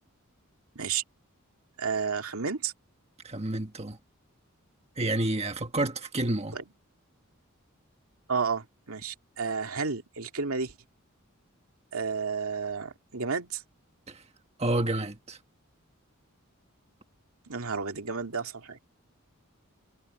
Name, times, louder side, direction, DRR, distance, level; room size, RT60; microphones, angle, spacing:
voice 1, 1.8-2.7 6.5-6.6 8.3-10.7 11.9-13.6 17.5-18.8, right 5 dB, 90° right, 2.1 m, -31 dB
voice 2, 3.2-4.0 5.0-6.6 14.1-14.2 14.6-15.4, right 1 dB, 30° right, 1.5 m, -29 dB
head